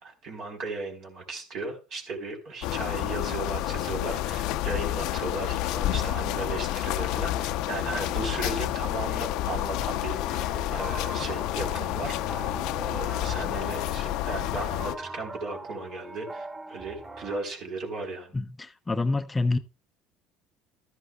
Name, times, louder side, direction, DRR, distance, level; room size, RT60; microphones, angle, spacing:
voice 1, 0.0-12.5 12.8-18.3, right 3 dB, 60° right, 3.9 m, -36 dB
sound 1, 2.6-15.0, left 13 dB, 70° left, 0.6 m, -29 dB
sound 2, 10.1-17.4, right 2 dB, 30° right, 3.4 m, -42 dB
voice 2, 18.3-19.6, left 3 dB, 15° left, 0.6 m, -27 dB
13.0 x 11.0 x 2.3 m
supercardioid pair, 90°, 0 cm